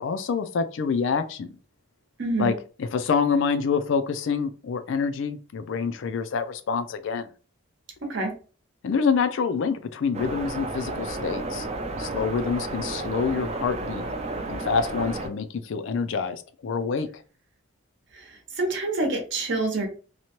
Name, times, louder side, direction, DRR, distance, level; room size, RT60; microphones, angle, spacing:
voice 1, 0.0-1.5 2.4-2.5 2.8-7.3 8.8-11.7 12.0-14.0 14.5-17.1, left 5 dB, 60° left, 10 dB, 0.3 m, -26 dB
voice 2, 2.2-2.5 8.1-8.3 18.1-19.9, right 2 dB, 55° right, 2 dB, 0.8 m, -27 dB
sound 1, 10.1-15.3, right 2 dB, 30° right, 0.4 m, -32 dB
2.8 x 2.1 x 2.9 m, 0.38 s
head